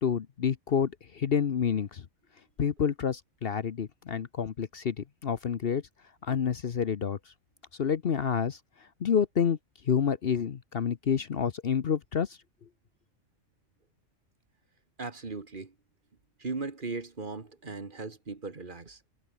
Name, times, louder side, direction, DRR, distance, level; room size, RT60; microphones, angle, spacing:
voice 1, 0.0-2.1 2.6-5.8 6.2-7.2 7.8-8.6 9.0-9.6 9.8-12.4, left 7 dB, 50° left, 1.0 m, -28 dB
voice 2, 15.0-15.7 16.4-19.0, right 3 dB, 40° right, 1.9 m, -38 dB
omnidirectional pair, 1.3 m